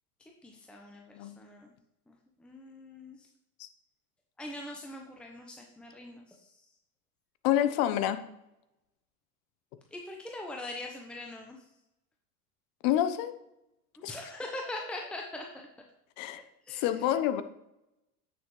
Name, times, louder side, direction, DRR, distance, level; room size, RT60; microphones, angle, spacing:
voice 1, 0.4-1.7 2.1-3.3 4.4-6.5 9.9-11.6 13.9-15.7 16.4-16.9, left 2 dB, ahead, 1 dB, 0.9 m, -42 dB
voice 2, 7.4-8.2 12.8-13.3 14.0-14.1 16.2-16.4 16.7-17.4, left 11 dB, 50° left, 10 dB, 1.0 m, -27 dB
9.3 x 6.4 x 3.2 m, 0.86 s
hypercardioid pair, 95°, 46 cm